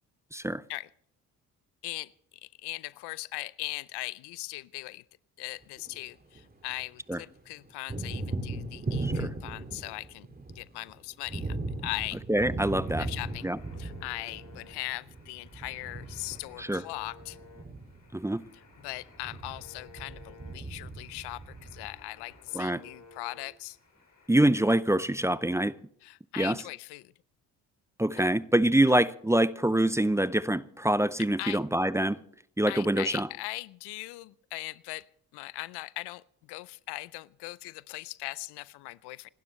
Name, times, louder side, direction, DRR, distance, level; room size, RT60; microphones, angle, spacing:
voice 1, 0.3-0.6 7.1-7.2 9.0-9.3 12.3-13.1 13.4-13.6 16.6-16.8 18.1-18.4 22.5-22.8 24.3-25.7 26.4-26.6 28.0-32.2 32.6-33.3, right 1 dB, 5° right, 0.5 m, -25 dB
voice 2, 2.4-5.0 5.4-10.3 10.5-11.6 11.8-12.2 13.0-13.5 13.8-17.4 18.8-23.8 26.0-27.1 28.2-28.3 31.4-31.6 32.7-35.1 35.3-39.3, left 20 dB, 80° left, 0.6 m, -39 dB
Thunder, 5.6-6.8 7.1-22.4, right 2 dB, 25° right, 2.2 m, -38 dB
sound 1, 12.7-24.8, left 4 dB, 50° left, 4.5 m, -56 dB
26.5 x 12.0 x 3.2 m
supercardioid pair, 60°, 40 cm